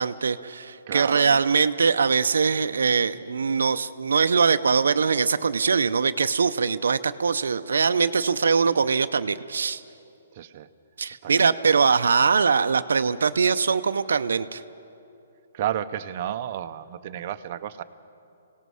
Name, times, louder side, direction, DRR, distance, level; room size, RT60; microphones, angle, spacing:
voice 1, 0.0-9.8 11.0-14.6, right 5 dB, 85° right, 11 dB, 0.5 m, -22 dB
voice 2, 0.9-1.4 10.4-10.7 11.2-11.5 15.5-17.8, right 11 dB, 40° right, 8 dB, 0.6 m, -32 dB
26.0 x 18.0 x 6.3 m, 2.7 s
hypercardioid pair, 160°, 0 cm